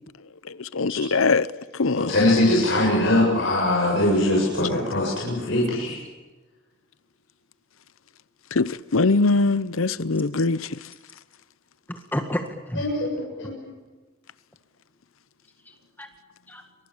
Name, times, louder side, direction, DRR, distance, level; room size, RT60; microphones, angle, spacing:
voice 1, 0.5-1.5 1.7-2.1 8.5-10.8, left 3 dB, 85° left, 0.8 m, -22 dB
voice 2, 2.0-6.0 12.7-13.7, left 1 dB, 65° left, 7.4 m, -22 dB
voice 3, 11.9-12.9 15.7-16.1 16.5-16.6, equal, 10° left, 1.8 m, -32 dB
29.0 x 24.5 x 7.4 m
head